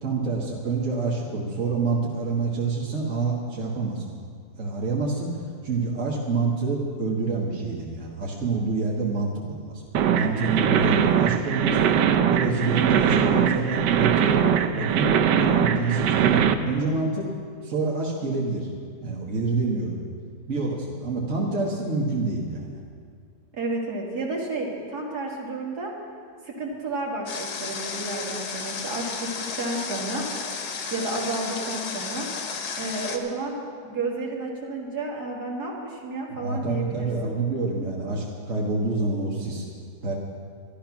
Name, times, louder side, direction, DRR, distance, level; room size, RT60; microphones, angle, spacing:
voice 1, 0.0-4.2 4.6-5.3 5.6-9.8 10.1-11.8 12.3-17.3 17.6-18.7 19.0-20.0 20.5-22.8 36.3-39.6 40.0-40.1, right 3 dB, 50° right, -4 dB, 1.8 m, -27 dB
sound 1, 9.9-16.5, right 8 dB, 80° right, 1.3 m, -21 dB
voice 2, 23.5-25.9 26.4-30.3 30.9-32.3 32.8-33.6 33.8-37.3, right 2 dB, 65° right, -2 dB, 2.6 m, -31 dB
Water, 27.3-33.2, left 5 dB, 80° left, 1.8 m, -33 dB
13.0 x 12.0 x 5.9 m, 2.2 s
omnidirectional pair, 1.8 m